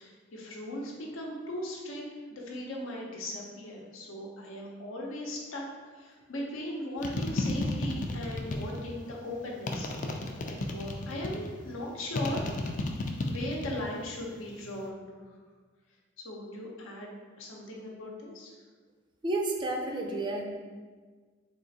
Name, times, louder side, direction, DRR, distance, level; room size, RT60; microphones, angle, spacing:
voice 1, 0.0-2.0 2.3-9.9 10.4-12.4 13.0-15.1 16.2-17.1 17.4-18.6, left 1 dB, 85° left, -1 dB, 0.8 m, -38 dB
sound 1, 7.0-8.9 9.7-11.5 12.1-13.8 14.1-14.7, left 2 dB, 40° left, 0.4 m, -33 dB
voice 2, 19.2-20.5, right 2 dB, 25° right, 1 dB, 0.4 m, -31 dB
3.7 x 2.5 x 3.9 m, 1.5 s
head